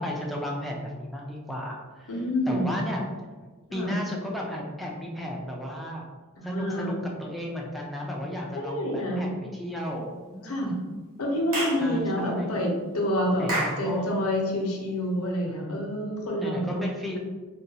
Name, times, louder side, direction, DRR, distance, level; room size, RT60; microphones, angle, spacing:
voice 1, 0.0-2.2 2.5-3.1 3.7-6.1 6.4-10.7 11.8-12.5 13.4-14.1 15.5-15.9 16.4-17.2, equal, ahead, -2 dB, 0.4 m, -34 dB
voice 2, 2.1-2.7 3.7-3.9 6.4-7.0 8.5-9.2 10.4-10.7 11.2-13.4 13.8-16.8, equal, 80° left, -1 dB, 0.8 m, -28 dB
Clapping / Chirp tweet, 11.5-11.8 13.5-13.8, right 1 dB, 75° right, 0.9 m, -28 dB
3.8 x 2.3 x 2.7 m, 1.4 s
head